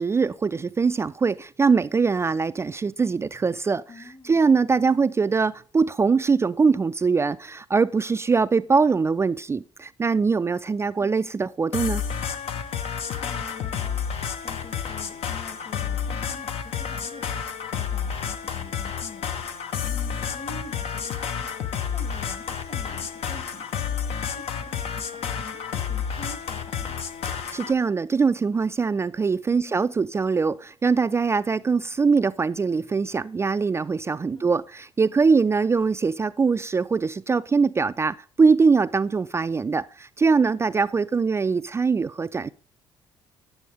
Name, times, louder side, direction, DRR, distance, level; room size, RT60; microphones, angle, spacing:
voice 1, 0.0-3.8 4.2-12.0 27.5-42.5, right 4 dB, 25° right, 0.3 m, -22 dB
voice 2, 3.9-4.4 11.0-11.3 13.2-19.3 19.8-24.0 24.3-27.0 29.5-29.8 34.3-34.6, left 3 dB, 50° left, 2.2 m, -46 dB
sound 1, 11.7-27.7, left 7 dB, 65° left, 0.8 m, -30 dB
9.2 x 6.2 x 3.4 m
supercardioid pair, 70°, 11 cm